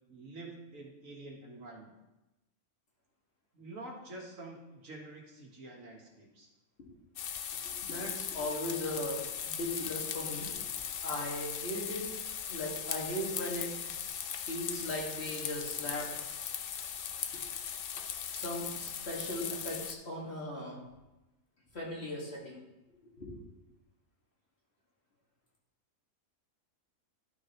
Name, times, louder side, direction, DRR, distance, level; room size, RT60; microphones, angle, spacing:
voice 1, 0.1-1.9 3.5-6.5, right 2 dB, 65° right, 0 dB, 1.8 m, -47 dB
sound 1, 7.2-19.9, left 8 dB, 70° left, 0.5 m, -38 dB
voice 2, 7.7-10.6 11.0-12.1 12.5-13.7 14.5-16.2 18.3-20.8 21.7-22.6 23.2-23.4, left 1 dB, 45° left, -3 dB, 2.0 m, -38 dB
11.5 x 6.4 x 3.0 m, 1.0 s
omnidirectional pair, 1.5 m